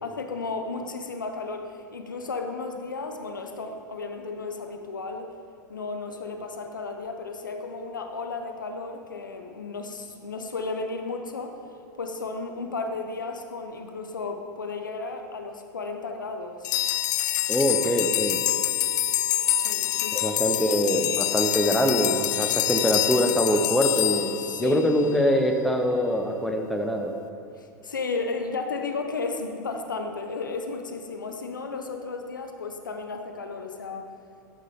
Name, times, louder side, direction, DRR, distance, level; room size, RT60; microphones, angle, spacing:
voice 1, 0.0-5.3 5.7-11.6 12.0-16.7 19.5-20.3 24.4-24.9 27.6-34.1, left 3 dB, 90° left, 5 dB, 0.9 m, -34 dB
sound 1, 16.6-25.2, left 13 dB, 65° left, 0.5 m, -26 dB
voice 2, 17.5-18.4 20.1-24.3 24.6-27.1, equal, ahead, 3 dB, 1.0 m, -24 dB
12.0 x 9.1 x 3.7 m, 2.8 s
hypercardioid pair, 90°, 10 cm